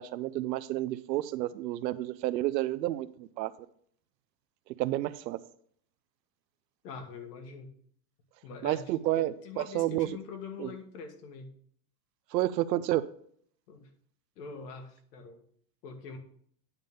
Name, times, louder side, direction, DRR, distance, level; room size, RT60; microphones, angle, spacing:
voice 1, 0.0-3.5 4.8-5.4 8.6-10.1 10.6-10.7 12.3-13.0, right 15 dB, 80° right, 15 dB, 0.7 m, -30 dB
voice 2, 6.8-7.7 8.4-8.8 9.4-11.5 13.7-13.9 14.4-15.4 15.8-16.2, left 5 dB, 70° left, 5 dB, 1.8 m, -43 dB
9.6 x 3.6 x 6.8 m, 0.62 s
supercardioid pair, 165°, 49 cm